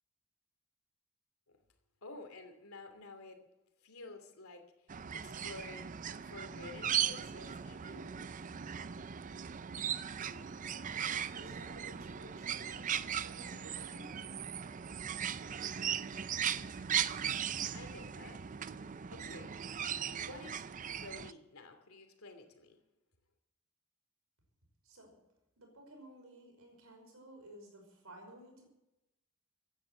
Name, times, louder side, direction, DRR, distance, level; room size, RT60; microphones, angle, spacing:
voice 1, 2.0-3.4 3.8-4.7 5.1-5.9 6.2-8.1 17.7-18.4 19.1-19.5 20.1-20.6 20.9-22.8, left 3 dB, 85° left, 5 dB, 2.8 m, -51 dB
sound 1, 4.9-21.3, right 8 dB, 35° right, 0.5 m, -38 dB
voice 2, 10.2-14.7 24.8-25.1 25.6-28.7, right 1 dB, 85° right, 3 dB, 5.5 m, -55 dB
16.0 x 10.5 x 7.8 m, 0.95 s
head